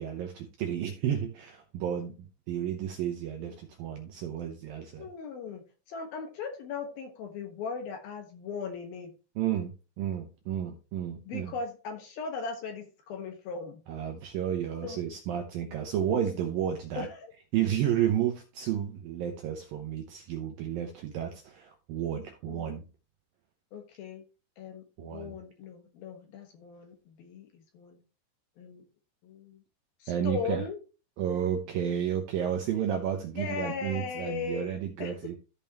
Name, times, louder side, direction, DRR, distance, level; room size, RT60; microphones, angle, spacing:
voice 1, 0.0-5.1 9.4-11.5 13.9-17.1 17.5-22.8 25.0-25.4 30.1-30.6 31.2-35.4, right 9 dB, 75° right, 3 dB, 2.2 m, -32 dB
voice 2, 5.0-9.1 11.3-13.8 14.8-15.0 17.0-17.3 22.5-22.7 23.7-24.2 24.6-28.0 28.6-28.8 29.2-29.6 30.0-30.8 33.3-35.1, left 5 dB, 65° left, 5 dB, 2.8 m, -38 dB
14.5 x 5.3 x 2.9 m, 0.31 s
omnidirectional pair, 5.3 m